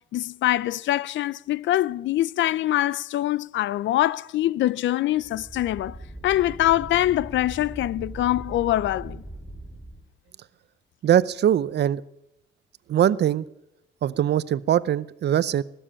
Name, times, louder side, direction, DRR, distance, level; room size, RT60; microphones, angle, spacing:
voice 1, 0.0-6.0 6.2-9.2, left 14 dB, 70° left, 0.5 m, -24 dB
sound 1, 5.1-10.0, right 1 dB, 5° right, 4.8 m, -40 dB
voice 2, 11.0-12.0 12.9-13.5 14.0-15.6, right 10 dB, 60° right, 0.6 m, -21 dB
20.0 x 7.2 x 8.7 m
cardioid pair, 90°, 20 cm